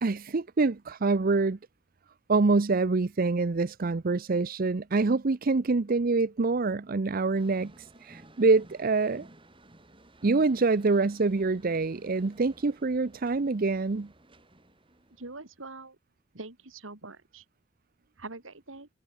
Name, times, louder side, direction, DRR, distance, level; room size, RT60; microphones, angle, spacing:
voice 1, 0.0-1.6 2.3-9.3 10.2-14.1, right 3 dB, 45° right, 0.6 m, -26 dB
sound 1, 7.3-15.6, right 1 dB, 25° right, 3.9 m, -55 dB
voice 2, 15.2-16.0 16.3-17.4 18.2-18.9, right 3 dB, 85° right, 3.1 m, -43 dB
head